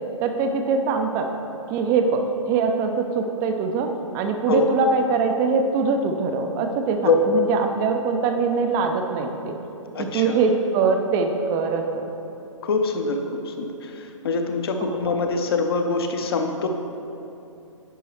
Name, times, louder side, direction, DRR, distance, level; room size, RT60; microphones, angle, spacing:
voice 1, 0.2-1.3 1.7-2.2 2.5-3.9 4.1-9.6 10.0-12.0 14.8-15.2, right 4 dB, 15° right, 5 dB, 0.3 m, -23 dB
voice 2, 9.9-10.4 12.6-16.7, left 4 dB, 45° left, 5 dB, 0.7 m, -24 dB
9.9 x 5.3 x 3.1 m, 2.8 s
figure-of-eight pair, 125°, 17 cm